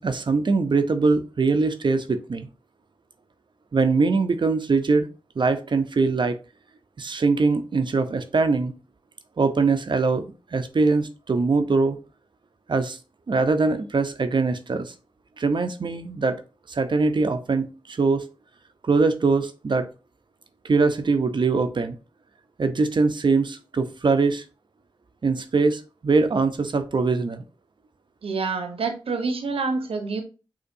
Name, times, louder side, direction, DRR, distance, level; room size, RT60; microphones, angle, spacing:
voice 1, 0.0-2.5 3.7-5.1 5.4-6.4 7.0-8.7 9.4-12.0 12.7-13.0 13.3-14.9 15.4-16.4 16.7-18.2 18.8-19.9 20.6-22.0 22.6-24.4 25.2-27.4, right 4 dB, 55° right, 9 dB, 0.7 m, -22 dB
voice 2, 28.2-30.2, right 4 dB, 80° right, 6 dB, 0.9 m, -27 dB
6.6 x 2.8 x 2.6 m, 0.33 s
cardioid pair, 55°, 10 cm